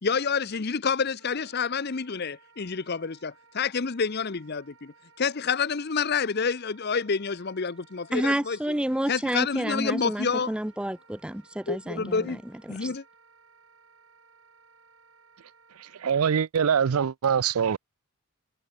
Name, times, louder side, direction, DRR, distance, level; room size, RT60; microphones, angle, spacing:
voice 1, 0.0-8.6 9.1-10.5 11.7-12.4 12.7-13.0, left 5 dB, 50° left, 0.7 m, -28 dB
Wind instrument woodwind instrument, 1.2-16.3, right 5 dB, 70° right, 5.8 m, -58 dB
voice 2, 8.1-12.9, right 1 dB, 5° right, 0.4 m, -30 dB
voice 3, 16.0-17.8, right 7 dB, 85° right, 0.5 m, -23 dB
head